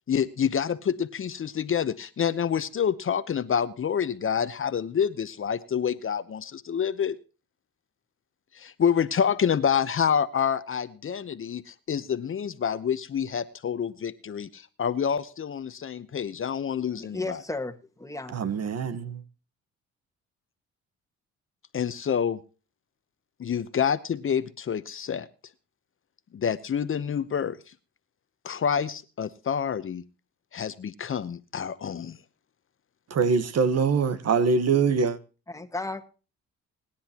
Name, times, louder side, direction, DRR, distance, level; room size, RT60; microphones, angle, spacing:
voice 1, 0.1-7.2 8.5-17.4 21.7-22.4 23.4-25.3 26.3-27.6 28.4-30.0 30.5-32.2, left 7 dB, 45° left, 0.9 m, -27 dB
voice 2, 17.0-18.4 35.5-36.0, left 2 dB, 10° left, 1.7 m, -34 dB
voice 3, 18.3-19.2 33.1-35.2, right 5 dB, 55° right, 1.4 m, -23 dB
25.5 x 10.0 x 3.0 m
cardioid pair, 90°, 30 cm